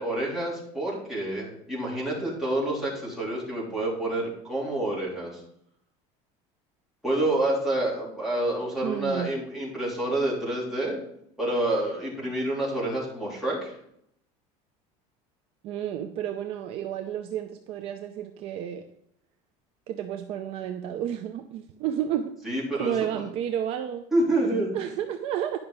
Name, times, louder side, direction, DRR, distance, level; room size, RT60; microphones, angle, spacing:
voice 1, 0.0-5.4 7.0-11.0 11.4-13.7 22.4-23.2 24.1-24.7, right 1 dB, ahead, -7 dB, 3.4 m, -28 dB
voice 2, 8.8-9.3 15.6-18.8 19.9-22.3 22.7-24.1 24.7-25.6, right 10 dB, 45° right, 7 dB, 0.5 m, -31 dB
10.5 x 5.8 x 5.0 m, 0.72 s
cardioid pair, 175°, 14 cm